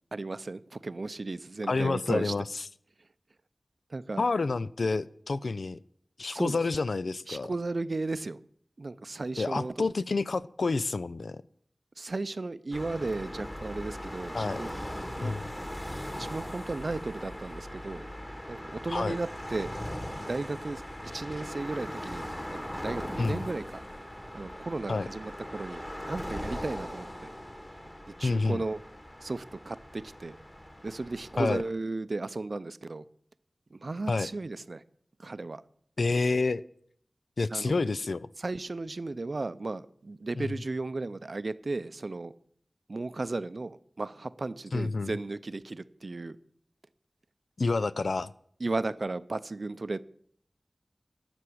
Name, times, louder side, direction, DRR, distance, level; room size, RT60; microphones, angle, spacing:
voice 1, 0.1-2.3 3.9-4.2 6.3-6.6 7.3-8.4 8.8-9.7 12.0-14.7 15.2-15.3 16.2-18.1 18.5-19.8 20.3-20.8 21.1-23.8 24.3-27.3 28.2-28.8 29.2-30.4 30.8-33.0 33.7-34.8 35.2-35.6 37.5-37.8 38.4-42.3 42.9-46.4 48.6-50.0, right 3 dB, 65° right, 0.5 m, -35 dB
voice 2, 1.7-2.7 4.2-5.8 6.2-7.5 9.4-11.4 14.3-14.6 15.2-15.5 18.9-19.2 23.2-23.4 24.9-25.1 28.2-28.6 31.4-31.6 34.1-34.3 36.0-36.6 37.4-38.3 40.3-40.5 44.7-45.1 47.6-48.3, left 3 dB, 85° left, 0.4 m, -29 dB
sound 1, 12.7-31.7, equal, 25° left, 2.2 m, -40 dB
12.5 x 6.1 x 8.5 m
wide cardioid pair, 65°, 0 cm